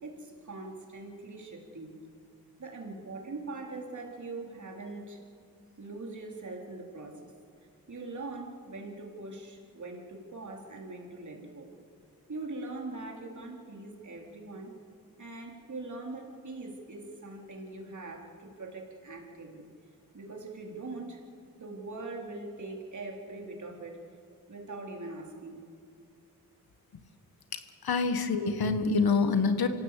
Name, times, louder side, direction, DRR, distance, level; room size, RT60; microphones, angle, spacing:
voice 1, 0.0-2.0 2.6-5.2 5.8-7.3 7.9-11.7 12.3-14.7 15.2-19.7 20.1-21.2 21.6-24.0 24.5-25.6, right 2 dB, 55° right, 1 dB, 4.1 m, -42 dB
voice 2, 27.5-29.7, left 4 dB, 80° left, 9 dB, 1.7 m, -26 dB
26.5 x 17.0 x 8.5 m, 2.4 s
cardioid pair, 65°, 36 cm